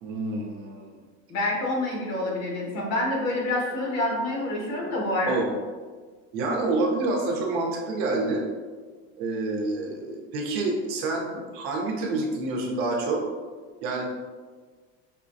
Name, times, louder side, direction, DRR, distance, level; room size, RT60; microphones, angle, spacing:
voice 1, 0.0-0.9 5.3-5.5 6.3-8.5 9.2-11.3 11.5-13.2 13.8-14.1, right 2 dB, 70° right, 0 dB, 0.8 m, -27 dB
voice 2, 1.3-5.4, left 1 dB, 50° left, -2 dB, 1.2 m, -27 dB
5.4 x 2.3 x 2.6 m, 1.5 s
cardioid pair, 140°, 31 cm